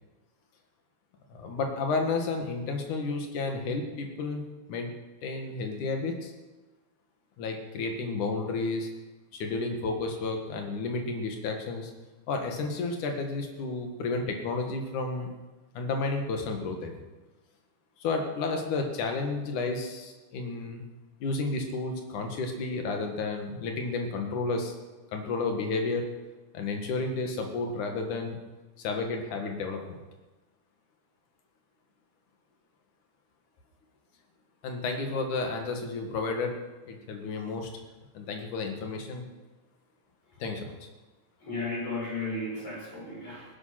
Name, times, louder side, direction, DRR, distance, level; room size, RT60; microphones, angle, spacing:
voice 1, 1.3-4.4 4.7-4.9 5.2-6.3 7.4-8.9 9.3-11.9 12.3-15.3 15.7-16.9 18.0-20.8 21.2-24.7 25.1-26.0 26.5-28.4 28.8-29.8 34.6-36.5 36.9-37.7 38.1-39.2 40.4-40.7, left 3 dB, 85° left, 3 dB, 3.3 m, -31 dB
voice 2, 41.4-43.5, left 2 dB, 45° left, -5 dB, 7.1 m, -34 dB
17.0 x 10.5 x 5.9 m, 1.2 s
omnidirectional pair, 3.5 m